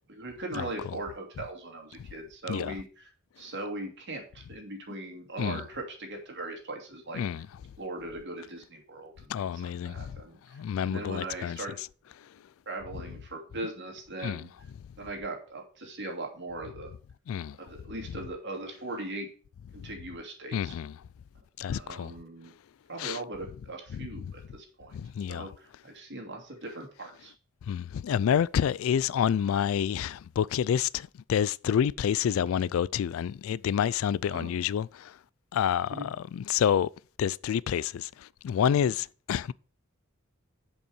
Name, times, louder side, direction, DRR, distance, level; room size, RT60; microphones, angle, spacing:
voice 1, 0.1-3.1 3.4-7.2 7.8-9.3 9.6-11.8 12.7-14.5 15.0-16.9 17.6-19.3 19.7-20.8 21.7-22.5 22.9-25.0 25.3-27.3 34.3-34.5 35.9-36.1, right 2 dB, 60° right, 2.7 m, -39 dB
voice 2, 7.1-7.5 9.3-10.2 10.5-11.6 14.2-14.5 17.3-17.6 20.5-20.9 21.6-22.1 23.0-23.2 23.9-24.3 24.9-25.5 27.7-35.2 35.5-36.9 37.2-39.5, left 8 dB, 70° left, 0.3 m, -28 dB
7.3 x 5.4 x 6.4 m
head